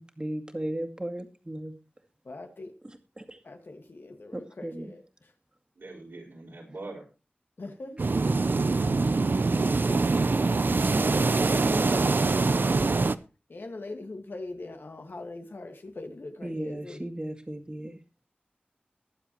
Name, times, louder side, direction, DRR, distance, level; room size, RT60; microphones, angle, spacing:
voice 1, 0.0-1.7 3.2-3.4 4.3-4.9 9.5-9.7 10.7-11.0 11.4-12.1 16.4-18.0, right 1 dB, 25° right, 2.2 m, -36 dB
voice 2, 2.2-2.7 3.4-5.3 7.6-8.0 13.5-17.0, left 2 dB, 75° left, 1.9 m, -42 dB
voice 3, 5.8-7.0, right 2 dB, 85° right, 4.6 m, -42 dB
sound 1, 8.0-13.2, right 3 dB, 65° right, 0.6 m, -24 dB
21.5 x 7.6 x 3.1 m
wide cardioid pair, 55°, 4 cm